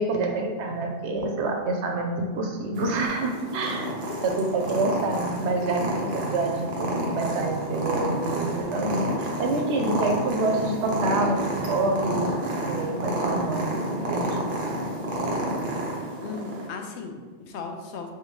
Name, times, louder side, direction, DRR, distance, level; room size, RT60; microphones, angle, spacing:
voice 1, 0.0-3.9 4.2-5.8 6.1-12.3 12.6-13.7 14.1-14.4, right 2 dB, 85° right, 2 dB, 0.9 m, -27 dB
Purr, 2.8-16.7, right 1 dB, 55° right, 0.8 m, -30 dB
voice 2, 3.8-4.4 16.2-18.1, left 5 dB, 75° left, 3 dB, 0.9 m, -37 dB
4.1 x 3.5 x 3.1 m, 1.4 s
omnidirectional pair, 1.1 m